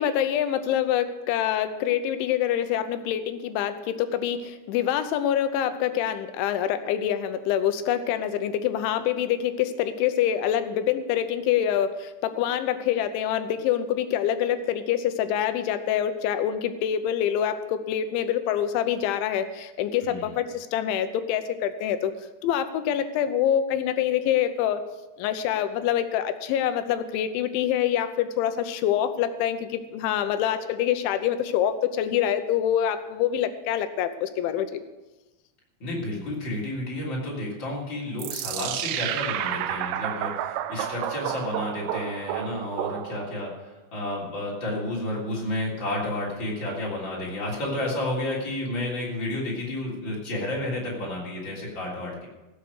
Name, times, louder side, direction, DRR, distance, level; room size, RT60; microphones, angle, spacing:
voice 1, 0.0-22.1 22.4-24.8 25.2-34.8, left 10 dB, 85° left, 10 dB, 3.2 m, -26 dB
voice 2, 20.0-20.3 35.8-43.5 43.9-52.3, left 1 dB, 30° left, -4 dB, 3.5 m, -31 dB
sound 1, 38.2-43.5, right 11 dB, 85° right, 2.4 m, -31 dB
16.5 x 8.2 x 6.3 m, 1.1 s
omnidirectional pair, 5.3 m